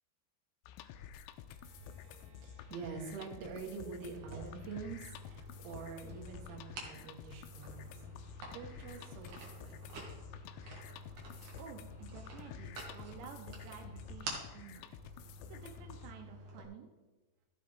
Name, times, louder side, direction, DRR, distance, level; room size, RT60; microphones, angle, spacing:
sound 1, 0.6-16.1, left 9 dB, 85° left, 2.8 m, -51 dB
voice 1, 1.5-9.7, right 5 dB, 70° right, 1 dB, 3.4 m, -47 dB
sound 2, 4.2-16.6, right 2 dB, 55° right, 2.9 m, -49 dB
voice 2, 11.6-16.9, right 7 dB, 85° right, 3 dB, 3.1 m, -52 dB
14.0 x 7.5 x 3.5 m, 1.2 s
omnidirectional pair, 5.0 m